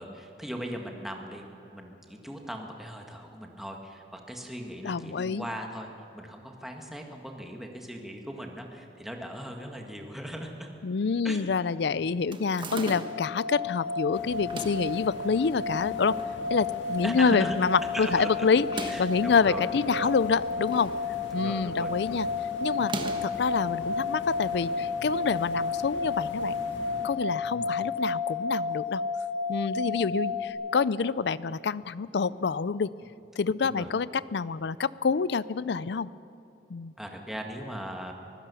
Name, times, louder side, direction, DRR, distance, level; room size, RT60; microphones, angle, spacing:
voice 1, 0.0-1.4 1.7-5.9 6.1-10.7 11.2-11.7 11.9-12.2 12.6-12.8 17.0-17.6 17.9-18.5 18.9-20.1 21.3-22.2 27.5-27.7 30.0-30.2 33.6-33.9 37.0-38.1, equal, ahead, 1 dB, 1.8 m, -39 dB
voice 2, 4.8-5.5 10.8-16.2 16.5-20.9 21.3-22.3 22.6-22.9 23.2-26.6 27.0-29.0 29.5-32.9 33.4-36.1 36.7-36.9, left 5 dB, 65° left, 18 dB, 0.5 m, -27 dB
sound 1, 12.3-13.3 14.4-14.9 15.7-16.4 16.7-16.8 17.0-17.1 18.6-19.2 20.2-21.0 21.3-21.6 22.8-23.4, right 2 dB, 25° right, 1.3 m, -38 dB
sound 2, 12.7-30.5, left 4 dB, 85° right, 4.3 m, -32 dB
sound 3, 14.1-27.1, left 1 dB, 90° left, 2.3 m, -44 dB
24.0 x 16.0 x 7.0 m, 2.8 s
head